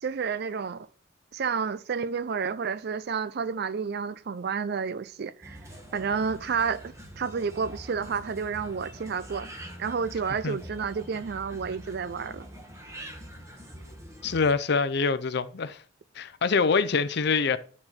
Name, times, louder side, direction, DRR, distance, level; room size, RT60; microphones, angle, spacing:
voice 1, 0.0-0.9 1.3-5.6 5.9-6.8 7.2-9.5 9.8-12.5, right 6 dB, 55° right, 0.4 m, -30 dB
sound 1, 5.4-14.5, equal, 15° right, 1.3 m, -44 dB
voice 2, 14.2-15.8 16.1-17.6, left 4 dB, 55° left, 0.6 m, -25 dB
9.8 x 4.3 x 4.4 m
head